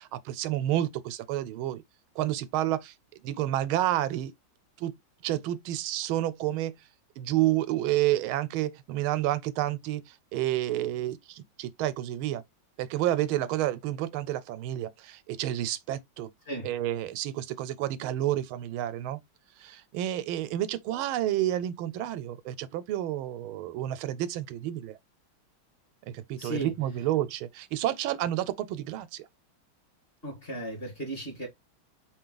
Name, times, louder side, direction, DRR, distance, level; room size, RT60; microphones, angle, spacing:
voice 1, 0.0-1.8 2.2-2.9 3.2-4.3 4.8-4.9 5.2-6.7 7.2-12.4 12.8-16.3 16.6-19.2 19.6-24.9 26.1-29.3, right 13 dB, 90° right, 1.4 m, -30 dB
voice 2, 26.4-26.7 30.2-31.5, right 1 dB, 30° left, 2.1 m, -35 dB
4.6 x 2.9 x 3.8 m
omnidirectional pair, 2.2 m